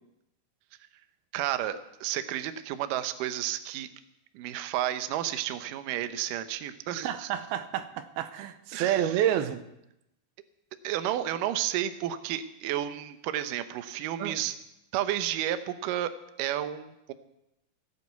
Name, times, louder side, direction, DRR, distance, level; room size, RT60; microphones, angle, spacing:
voice 1, 1.3-3.9 4.3-7.3 8.7-9.3 10.8-14.5 14.9-17.1, right 12 dB, 75° right, 10 dB, 2.3 m, -32 dB
voice 2, 7.0-9.6 14.2-14.4, right 11 dB, 90° right, 10 dB, 2.7 m, -29 dB
16.5 x 8.4 x 8.0 m, 0.86 s
omnidirectional pair, 4.4 m